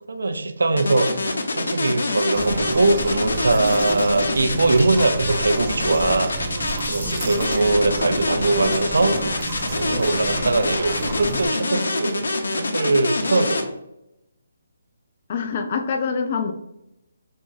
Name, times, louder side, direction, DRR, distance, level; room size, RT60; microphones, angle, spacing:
voice 1, 0.1-1.1 1.5-6.3 6.9-9.2 9.8-12.3 12.6-13.6, right 2 dB, 85° right, 8 dB, 0.4 m, -21 dB
sound 1, 0.8-13.6, left 2 dB, 80° left, 0.6 m, -26 dB
sound 2, 2.3-11.5, right 2 dB, 25° right, 0.5 m, -30 dB
voice 2, 15.3-16.5, left 5 dB, 30° left, 5 dB, 0.3 m, -25 dB
2.9 x 2.4 x 3.9 m, 0.85 s
hypercardioid pair, 170°, 0 cm